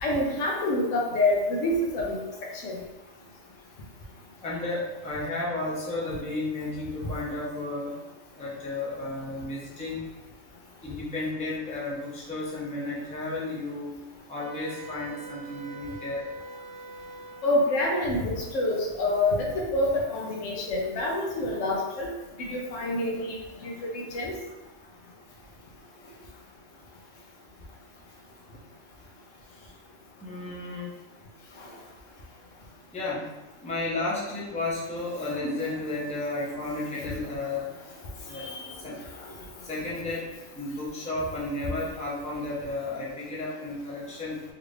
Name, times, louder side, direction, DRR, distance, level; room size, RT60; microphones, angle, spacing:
voice 1, 0.0-2.2 2.6-2.8 17.4-22.1 22.4-24.3 35.4-35.6 38.3-38.7, left 1 dB, 75° left, -1 dB, 1.0 m, -27 dB
voice 2, 4.4-8.0 8.4-10.0 10.8-14.0 14.3-16.2 30.2-30.9 32.9-33.3 33.6-37.7 38.3-38.5 38.8-39.0 39.6-44.4, left 2 dB, 5° left, -7 dB, 0.6 m, -33 dB
Wind instrument woodwind instrument, 14.4-17.8, right 2 dB, 45° right, 1.1 m, -44 dB
3.4 x 2.5 x 3.2 m, 1.1 s
omnidirectional pair, 1.3 m